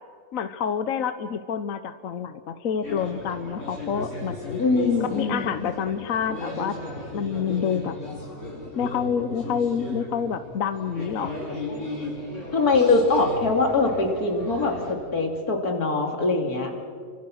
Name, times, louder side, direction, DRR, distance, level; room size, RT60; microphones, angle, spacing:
voice 1, 0.3-4.6 5.0-6.8 7.1-8.0 8.8-11.3, left 7 dB, 70° left, 10 dB, 1.2 m, -28 dB
sound 1, 2.8-14.9, left 1 dB, 55° left, 6.8 m, -35 dB
voice 2, 4.6-5.7 12.5-16.7, left 3 dB, 90° left, 3 dB, 3.3 m, -23 dB
29.0 x 25.5 x 6.4 m, 2.1 s
omnidirectional pair, 1.5 m